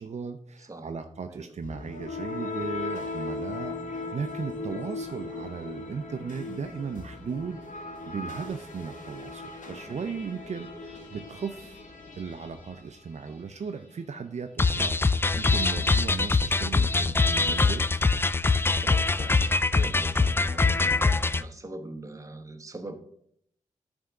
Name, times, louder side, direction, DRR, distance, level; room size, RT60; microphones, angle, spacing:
voice 1, 0.0-11.8 12.2-18.0, right 5 dB, 60° right, 7 dB, 0.6 m, -37 dB
voice 2, 0.6-0.9 1.3-1.8 4.7-4.8 9.6-10.0 13.3-13.4 18.8-22.9, right 2 dB, 25° right, 6 dB, 1.1 m, -42 dB
sound 1, 1.6-13.5, left 3 dB, 70° left, 1.7 m, -38 dB
sound 2, 14.6-21.4, left 3 dB, 15° left, 0.3 m, -23 dB
9.4 x 3.5 x 6.4 m, 0.68 s
cardioid pair, 70°, 13 cm